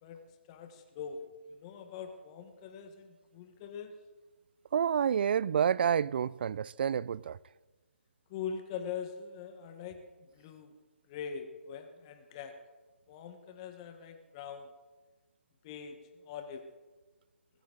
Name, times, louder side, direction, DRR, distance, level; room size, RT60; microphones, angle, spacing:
voice 1, 0.5-1.2 1.5-3.9 8.3-10.0 10.3-10.7 11.1-12.5 13.1-14.7 15.6-16.6, left 7 dB, 25° left, 1.3 m, -42 dB
voice 2, 4.7-7.4, right 8 dB, 50° right, 0.4 m, -29 dB
22.0 x 14.0 x 3.9 m
figure-of-eight pair, 150°, 7 cm